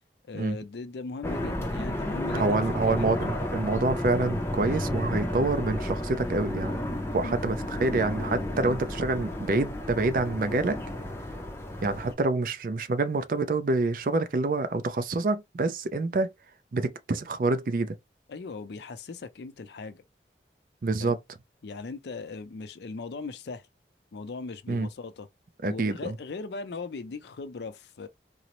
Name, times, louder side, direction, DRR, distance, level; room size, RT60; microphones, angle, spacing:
voice 1, 0.3-2.6 2.9-3.2 7.2-7.5 18.3-20.0 21.0-21.1 21.6-23.6 24.1-25.3 25.6-28.1, left 4 dB, 75° left, 0.4 m, -39 dB
sound 1, 1.2-12.1, left 1 dB, 15° left, 0.5 m, -32 dB
voice 2, 2.3-6.8 7.1-10.8 11.8-16.3 16.7-18.0 20.8-21.2 24.7-24.9 25.6-26.2, right 3 dB, 50° right, 0.4 m, -27 dB
3.8 x 2.0 x 2.9 m
head